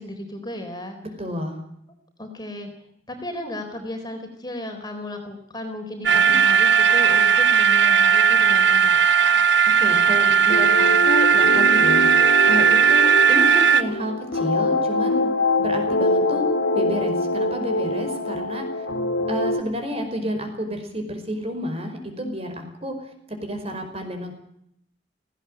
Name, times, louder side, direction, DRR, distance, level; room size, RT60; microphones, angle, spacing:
voice 1, 0.0-1.0 2.2-2.7 3.1-9.0, left 1 dB, 20° left, 4 dB, 4.1 m, -34 dB
voice 2, 1.0-1.6 6.1-6.4 9.6-15.3 15.6-16.5 16.7-18.7 19.3-24.3, equal, 30° right, 6 dB, 5.0 m, -30 dB
sound 1, 6.0-13.8, right 7 dB, 65° right, 1.0 m, -17 dB
sound 2, 10.5-19.6, left 2 dB, 70° left, 2.2 m, -24 dB
19.0 x 17.5 x 9.0 m, 0.74 s
head